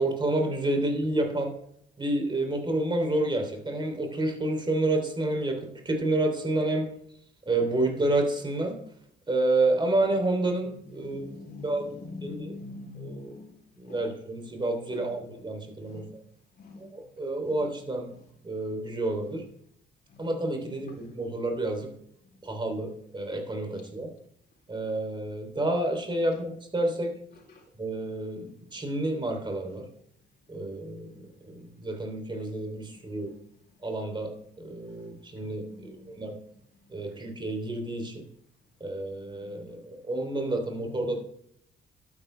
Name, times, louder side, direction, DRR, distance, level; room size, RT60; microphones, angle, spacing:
voice 1, 0.0-1.5 2.0-6.9 7.5-8.8 9.3-11.3 11.6-11.8 12.2-12.5 13.0-13.4 13.8-16.0 16.8-18.1 18.4-19.4 20.2-21.9 22.4-24.1 24.7-27.1 27.8-29.8 30.5-33.3 33.8-34.3 34.6-36.4 36.9-38.2 38.8-41.2, right 2 dB, 25° right, 3.2 m, -29 dB
voice 2, 11.0-13.4 13.9-14.1 14.9-15.2 15.8-16.1 16.6-16.8 35.8-36.1 39.5-39.6 40.7-41.2, left 3 dB, 50° left, 3.4 m, -43 dB
12.0 x 9.6 x 3.3 m
cardioid pair, 90°, 20 cm